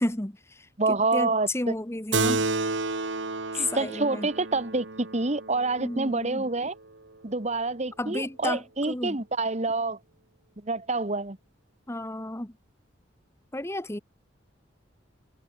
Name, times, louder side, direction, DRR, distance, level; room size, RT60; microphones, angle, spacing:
voice 1, 0.0-2.4 3.5-4.3 5.8-6.5 8.0-9.2 11.9-12.6 13.5-14.0, left 1 dB, 15° left, 1.2 m, -32 dB
voice 2, 0.8-1.5 3.5-6.7 7.2-10.0 10.6-11.4, right 3 dB, 40° right, 1.4 m, -27 dB
Keyboard (musical), 2.1-7.0, right 3 dB, 90° right, 2.6 m, -31 dB
head